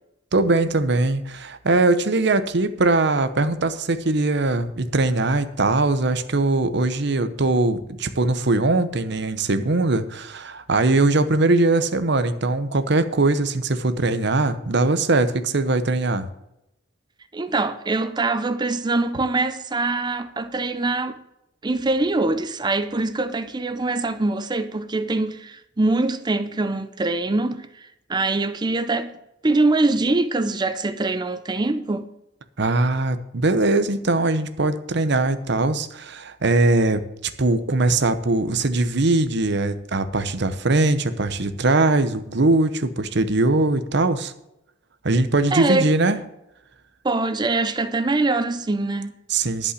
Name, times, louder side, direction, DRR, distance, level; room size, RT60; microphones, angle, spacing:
voice 1, 0.3-16.3 32.6-44.3 45.0-46.2 49.3-49.7, right 2 dB, 60° right, 0.9 m, -21 dB
voice 2, 17.3-21.2 21.6-29.2 29.4-32.1 45.5-45.9 47.0-49.1, right 2 dB, 20° right, 0.5 m, -23 dB
11.5 x 5.4 x 8.3 m
head